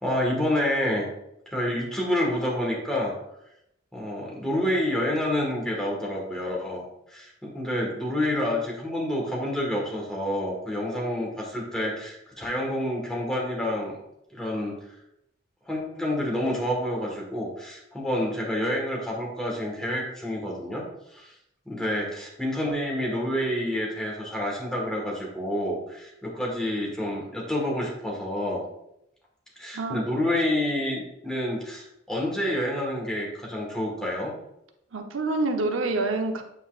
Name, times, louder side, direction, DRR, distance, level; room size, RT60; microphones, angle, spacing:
voice 1, 0.0-1.0 1.4-3.1 3.9-14.0 14.3-14.7 15.6-20.8 21.1-21.3 21.6-28.6 29.6-34.3, left 1 dB, 5° left, -3 dB, 1.5 m, -28 dB
voice 2, 29.7-30.0 34.9-36.4, right 2 dB, 90° right, 4 dB, 0.8 m, -27 dB
8.3 x 5.3 x 2.5 m, 0.80 s
head